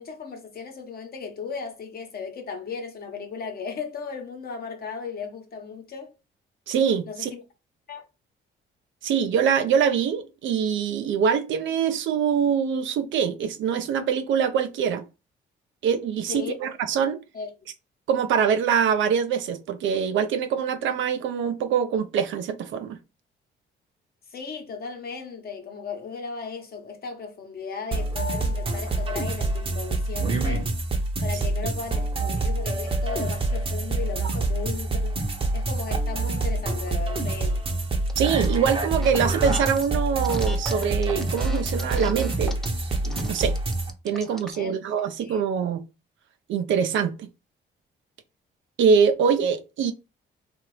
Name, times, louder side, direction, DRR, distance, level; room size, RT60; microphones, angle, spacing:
voice 1, 0.0-6.1 7.0-7.4 7.9-8.0 16.3-16.6 17.3-17.5 24.3-30.7 31.2-35.2 35.5-37.6 44.5-44.8 45.2-45.4, left 5 dB, 50° left, 0.9 m, -36 dB
voice 2, 6.7-7.3 9.0-15.0 15.8-17.2 18.1-23.0 38.2-42.6 43.0-43.6 44.0-45.8 46.5-47.3 48.8-49.9, right 7 dB, 75° right, 0.6 m, -24 dB
sound 1, 27.9-43.9, right 2 dB, 25° right, 0.8 m, -26 dB
sound 2, 38.1-38.6 38.9-39.9 40.2-44.6, equal, ahead, 0.5 m, -39 dB
2.8 x 2.4 x 3.1 m
cardioid pair, 90°, 20 cm